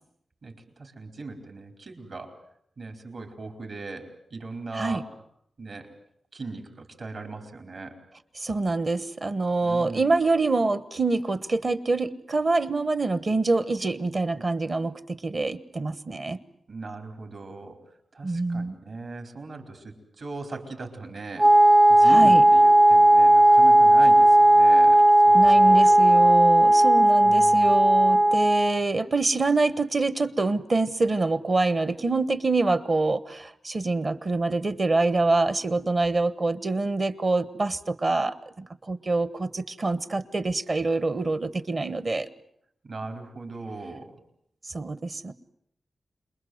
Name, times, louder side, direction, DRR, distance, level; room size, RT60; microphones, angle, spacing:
voice 1, 0.4-2.4 2.8-5.1 5.6-5.9 6.3-8.0 9.6-10.1 16.7-17.8 18.1-26.3 27.2-27.7 42.8-44.2, right 3 dB, 55° right, 4 dB, 4.5 m, -39 dB
voice 2, 8.4-16.4 18.2-18.8 22.1-22.4 25.3-42.3 44.7-45.3, right 3 dB, 40° right, 14 dB, 1.1 m, -25 dB
Wind instrument woodwind instrument, 21.4-28.8, right 1 dB, 20° right, 0.9 m, -16 dB
27.5 x 21.0 x 7.9 m, 0.71 s
wide cardioid pair, 135°, 0 cm